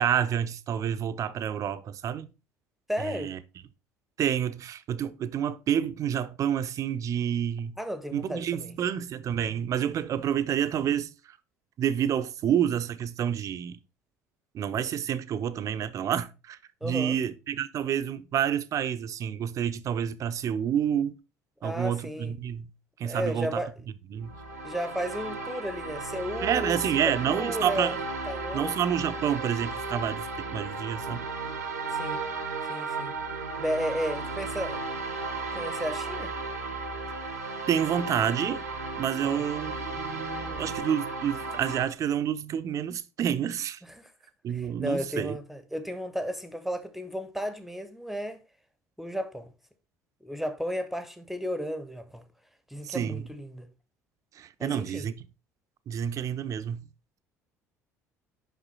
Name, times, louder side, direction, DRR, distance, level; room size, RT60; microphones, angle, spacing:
voice 1, 0.0-2.3 3.0-3.4 4.2-7.8 8.1-11.4 11.8-13.8 14.5-21.2 21.6-22.7 23.0-23.6 24.1-24.3 26.4-28.0 28.5-31.3 37.1-37.2 37.7-38.6 39.0-43.8 44.4-45.4 52.8-53.3 54.4-55.3 55.9-56.8, right 9 dB, 40° right, 0.5 m, -29 dB
voice 2, 2.9-3.3 7.8-8.7 16.8-17.2 21.6-22.3 23.0-23.7 24.6-28.0 28.3-28.7 31.9-32.2 32.7-33.1 33.6-34.8 35.5-36.3 39.2-39.4 43.8-44.1 44.5-48.4 49.0-49.5 50.2-52.2 52.7-53.7 54.6-55.1, equal, ahead, 0.8 m, -33 dB
sound 1, 24.2-41.9, right 3 dB, 85° right, 0.9 m, -35 dB
5.7 x 5.5 x 3.8 m
figure-of-eight pair, 60°, 8 cm